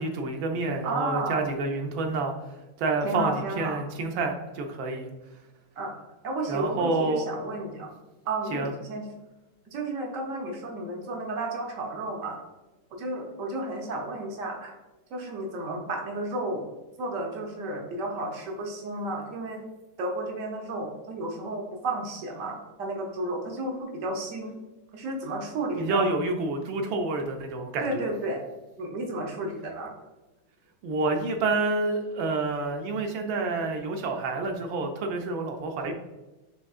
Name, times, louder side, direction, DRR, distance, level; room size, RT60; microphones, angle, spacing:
voice 1, 0.0-2.3 2.8-5.1 6.5-7.2 8.5-8.7 25.8-28.0 30.8-35.9, right 3 dB, 70° right, 4 dB, 1.3 m, -28 dB
voice 2, 0.8-1.5 3.0-3.8 5.8-5.9 6.2-7.9 8.2-9.0 9.7-12.4 12.9-14.7 15.1-16.7 17.0-19.6 20.0-24.5 24.9-26.1 27.8-28.4 28.8-29.9, right 2 dB, 55° right, 0 dB, 0.9 m, -32 dB
6.2 x 3.4 x 2.4 m, 1.1 s
omnidirectional pair, 2.4 m